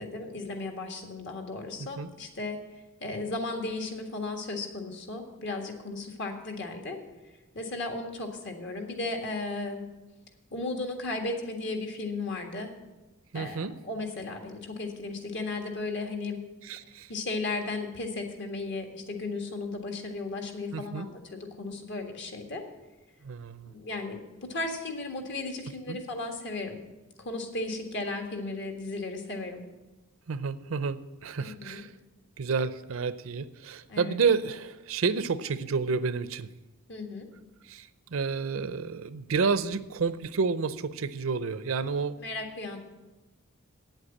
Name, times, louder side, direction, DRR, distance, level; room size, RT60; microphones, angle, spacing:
voice 1, 0.0-7.0 7.5-9.8 10.5-12.7 13.3-16.4 17.1-22.6 23.7-26.8 27.2-29.6 31.4-31.8 33.9-34.2 36.9-37.3 42.2-42.8, left 3 dB, 60° left, 4 dB, 1.8 m, -35 dB
voice 2, 13.3-13.7 16.6-17.1 20.7-21.1 23.2-23.7 25.9-26.0 30.3-31.9 32.4-36.5 37.6-42.2, right 5 dB, 70° right, 14 dB, 0.6 m, -30 dB
8.9 x 8.0 x 8.5 m, 1.1 s
head